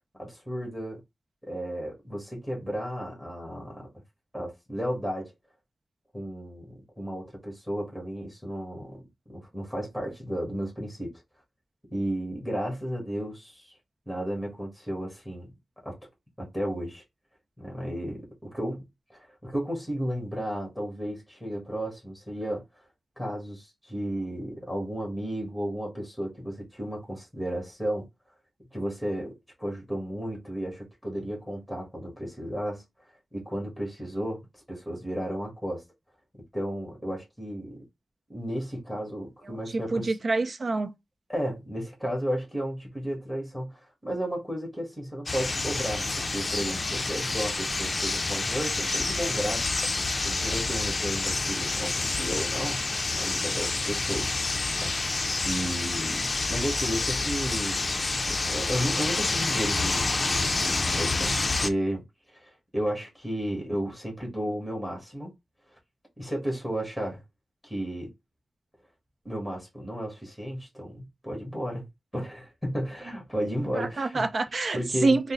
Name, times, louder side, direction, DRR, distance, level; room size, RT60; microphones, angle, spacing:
voice 1, 0.2-1.0 1.4-3.9 4.3-5.3 6.1-11.2 11.9-13.7 14.1-15.5 15.8-16.0 16.4-17.0 17.6-22.6 23.2-28.1 28.7-32.8 33.3-35.8 36.5-37.8 38.3-40.2 41.3-49.7 50.2-52.8 53.1-54.4 54.8-57.9 58.2-62.0 62.3-65.3 66.2-67.2 67.6-68.1 69.2-71.9 72.1-74.3 74.7-75.2, equal, 5° right, 1.6 m, -33 dB
voice 2, 39.7-40.9 73.8-75.3, right 3 dB, 60° right, 0.5 m, -26 dB
birds in park, 45.3-61.7, left 3 dB, 45° left, 0.4 m, -28 dB
3.9 x 2.0 x 3.8 m
wide cardioid pair, 85°, 0 cm